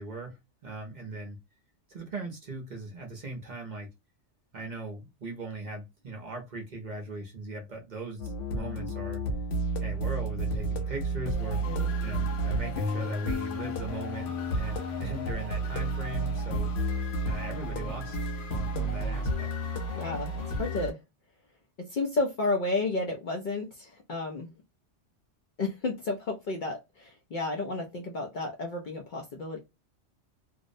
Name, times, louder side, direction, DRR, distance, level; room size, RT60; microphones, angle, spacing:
voice 1, 0.0-1.4 1.9-3.9 4.5-9.2 9.8-11.6 12.0-16.7 17.3-18.2 18.5-19.5, right 2 dB, 45° right, 0.7 m, -39 dB
sound 1, 8.2-20.9, right 1 dB, 85° left, 1.0 m, -31 dB
voice 2, 19.9-21.0 21.8-24.5 25.6-29.6, left 3 dB, 60° left, 0.6 m, -32 dB
2.6 x 2.0 x 2.5 m
omnidirectional pair, 1.2 m